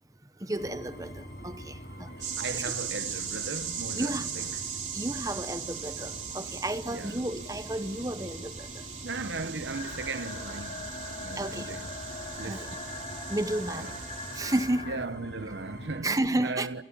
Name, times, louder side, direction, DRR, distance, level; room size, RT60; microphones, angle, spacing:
voice 1, 0.4-2.1 2.5-2.7 4.0-4.3 4.9-8.8 11.4-11.7 12.4-12.7 13.3-13.9 14.3-14.9 16.0-16.7, right 1 dB, 20° right, 0.9 m, -32 dB
sound 1, 0.5-16.0, equal, 60° left, 3.8 m, -45 dB
voice 2, 2.1-4.8 6.8-7.3 9.0-10.9 11.2-11.9 12.4-12.8 13.7-14.0 14.9-16.8, right 3 dB, 90° right, 1.0 m, -37 dB
sound 2, 2.2-14.7, right 7 dB, 45° right, 4.2 m, -39 dB
sound 3, 9.7-15.0, left 3 dB, 30° left, 4.6 m, -41 dB
28.5 x 27.5 x 5.5 m
head